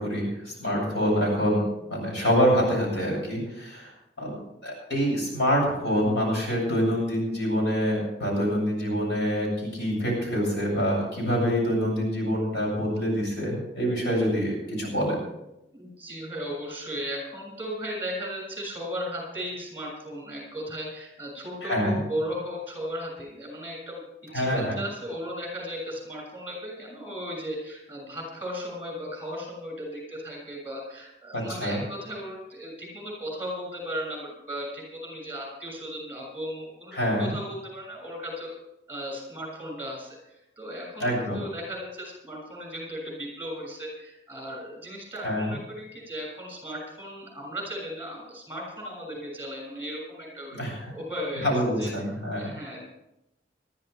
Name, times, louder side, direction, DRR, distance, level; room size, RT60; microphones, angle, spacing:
voice 1, 0.0-3.9 4.2-15.2 21.6-22.0 24.3-24.8 31.3-31.8 36.9-37.3 41.0-41.4 45.2-45.5 50.5-50.9 51.4-52.5, equal, 70° left, -2 dB, 7.5 m, -26 dB
voice 2, 0.6-1.0 15.7-38.6 38.9-50.6 50.9-51.9 52.4-52.9, equal, 10° right, 0 dB, 6.8 m, -36 dB
21.0 x 13.5 x 3.5 m, 0.88 s
head